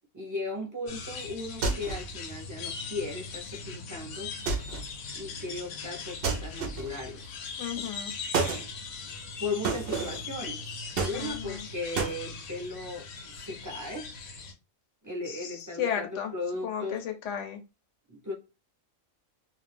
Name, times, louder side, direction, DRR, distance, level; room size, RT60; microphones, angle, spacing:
voice 1, 0.1-4.4 5.1-7.3 9.4-10.7 11.0-14.1 15.0-17.0 18.1-18.3, left 2 dB, 20° right, -1 dB, 0.5 m, -37 dB
sound 1, 0.9-14.5, left 5 dB, 90° left, 1.1 m, -40 dB
sound 2, 1.6-2.1 4.5-4.9 6.2-7.0 8.3-8.7 9.6-10.3 11.0-11.6 12.0-12.2, right 4 dB, 55° right, 0.7 m, -30 dB
voice 2, 7.6-8.1 11.1-11.7 15.2-16.3 16.6-17.6, left 8 dB, 70° left, 6 dB, 0.9 m, -34 dB
2.5 x 2.3 x 3.3 m, 0.28 s
omnidirectional pair, 1.4 m